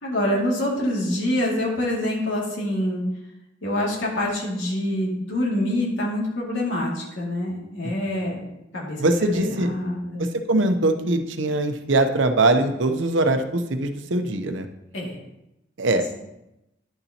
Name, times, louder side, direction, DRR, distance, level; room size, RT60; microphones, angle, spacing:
voice 1, 0.0-3.0 3.6-8.4 8.7-10.3 14.9-15.2, left 1 dB, 85° left, -4 dB, 2.4 m, -26 dB
voice 2, 7.8-8.2 9.0-9.7 10.2-14.7 15.8-16.2, right 2 dB, 75° right, 7 dB, 0.7 m, -22 dB
10.5 x 6.9 x 2.9 m, 0.88 s
head